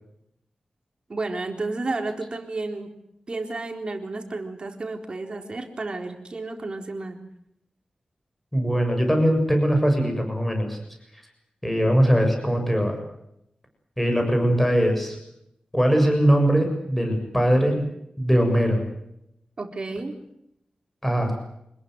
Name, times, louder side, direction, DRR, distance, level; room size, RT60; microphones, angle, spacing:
voice 1, 1.1-2.9 3.3-7.2 19.6-20.2, right 3 dB, 40° right, 4 dB, 4.0 m, -31 dB
voice 2, 8.5-10.8 11.6-13.0 14.0-15.2 15.7-17.8 18.2-18.8 21.0-21.3, equal, 5° left, 4 dB, 7.2 m, -21 dB
26.5 x 21.0 x 8.0 m, 0.79 s
wide cardioid pair, 145°, 2 cm